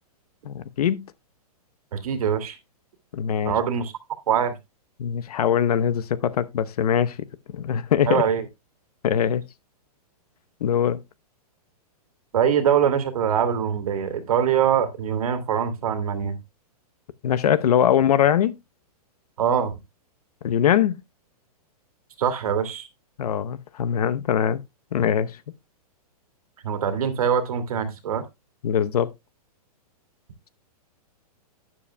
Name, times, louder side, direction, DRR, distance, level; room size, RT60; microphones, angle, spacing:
voice 1, 0.4-1.0 3.1-3.5 5.0-7.1 7.5-8.2 9.0-9.4 10.6-11.0 17.2-18.6 20.4-21.0 23.2-24.6 24.9-25.3 28.6-29.1, left 9 dB, 75° left, 0.9 m, -22 dB
voice 2, 1.9-2.6 3.4-3.9 4.3-4.5 8.1-8.4 12.3-16.4 19.4-19.7 22.2-22.9 26.6-28.2, right 8 dB, 65° right, 2.3 m, -23 dB
12.0 x 10.0 x 2.2 m
hypercardioid pair, 170°, 20 cm